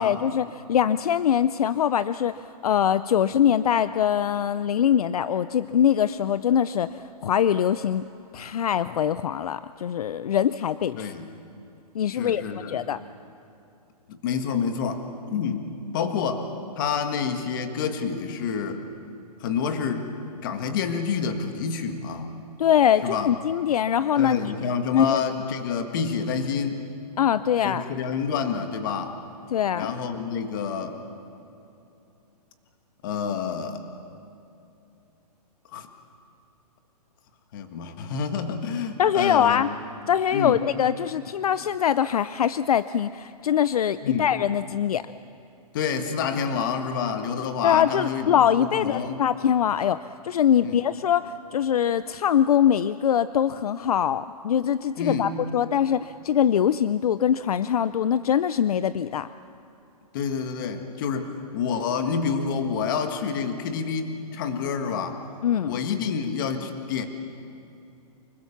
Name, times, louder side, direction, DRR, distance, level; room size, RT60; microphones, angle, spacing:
voice 1, 0.0-8.0 8.3-11.1 11.9-12.4 12.7-13.0 22.6-24.4 24.9-25.2 27.2-27.9 29.5-29.9 39.0-39.7 40.1-45.1 47.6-59.3 65.4-65.8, left 9 dB, 65° left, 14 dB, 0.5 m, -23 dB
voice 2, 11.0-11.3 12.1-12.8 14.1-15.7 15.9-16.5 16.8-18.8 19.4-22.4 23.0-23.3 24.2-26.8 27.6-29.1 29.7-31.0 33.0-33.8 35.7-35.9 37.5-39.6 40.3-40.6 44.0-44.3 45.7-48.3 48.5-49.2 50.6-50.8 55.0-55.3 60.1-65.2 65.7-67.1, left 6 dB, 30° left, 7 dB, 1.6 m, -28 dB
25.0 x 21.5 x 7.1 m, 2.7 s
hypercardioid pair, 170°, 21 cm